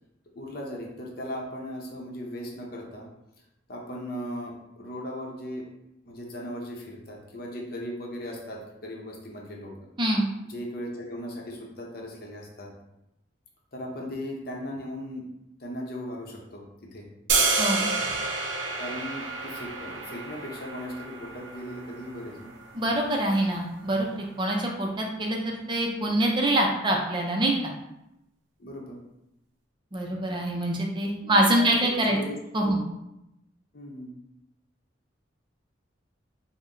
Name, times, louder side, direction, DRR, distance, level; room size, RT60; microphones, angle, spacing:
voice 1, 0.4-3.1 3.7-5.7 6.1-9.9 10.4-12.7 13.7-15.2 15.6-16.6 16.9-17.1 18.8-22.5 28.6-29.0 31.2-32.8 33.7-34.1, equal, 50° left, -1 dB, 0.7 m, -37 dB
sound 1, 17.3-23.4, right 4 dB, 80° right, 0.6 m, -30 dB
voice 2, 17.6-17.9 22.7-24.1 24.4-27.5 29.9-32.2 32.5-32.8, right 1 dB, 25° right, 0 dB, 0.5 m, -25 dB
4.0 x 2.1 x 3.7 m, 0.86 s
head